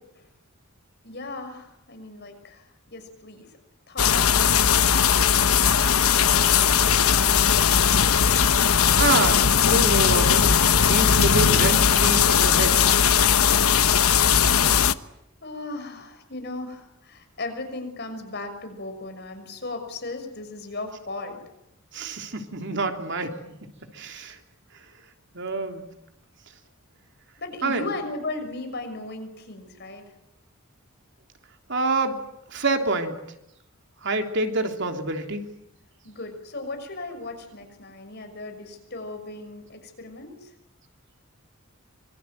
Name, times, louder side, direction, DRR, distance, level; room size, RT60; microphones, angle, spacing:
voice 1, 1.0-3.6 3.9-7.6 15.4-21.4 27.4-30.0 36.0-40.5, left 2 dB, 50° left, 6 dB, 6.3 m, -37 dB
sound 1, 4.0-14.9, left 7 dB, 90° left, 1.1 m, -19 dB
voice 2, 9.0-10.5 10.8-12.8 21.9-23.3 23.9-24.4 25.3-25.9 27.6-27.8 31.7-32.2 32.5-33.2 34.0-35.4, right 2 dB, 55° right, 5 dB, 3.3 m, -26 dB
25.5 x 24.5 x 9.3 m, 0.81 s
head